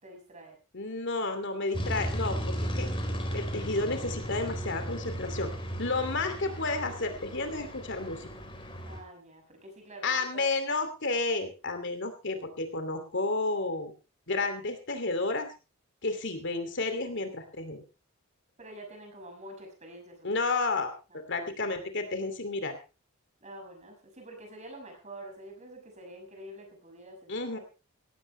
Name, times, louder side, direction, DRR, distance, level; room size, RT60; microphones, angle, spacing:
voice 1, 0.0-0.6 8.8-10.4 18.6-20.6 21.1-21.2 23.4-27.6, right 1 dB, 30° right, 4 dB, 6.1 m, -47 dB
voice 2, 0.7-2.9 3.3-5.5 5.8-8.3 10.0-13.9 14.3-15.5 16.0-17.8 20.2-20.9 21.3-22.7 27.3-27.6, left 3 dB, 55° left, 7 dB, 2.7 m, -31 dB
sound 1, 1.7-9.0, equal, 25° left, 4.0 m, -35 dB
17.5 x 15.5 x 3.3 m, 0.32 s
head